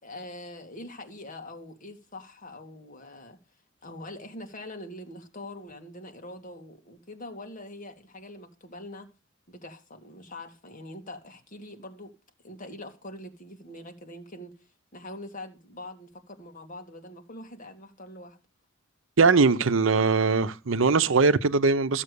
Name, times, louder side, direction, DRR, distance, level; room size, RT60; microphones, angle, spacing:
voice 1, 0.0-3.4 3.8-9.1 9.5-12.1 12.4-18.4, left 1 dB, 40° left, 2.3 m, -43 dB
voice 2, 19.2-22.0, right 4 dB, 70° right, 0.7 m, -21 dB
14.5 x 7.4 x 6.9 m
head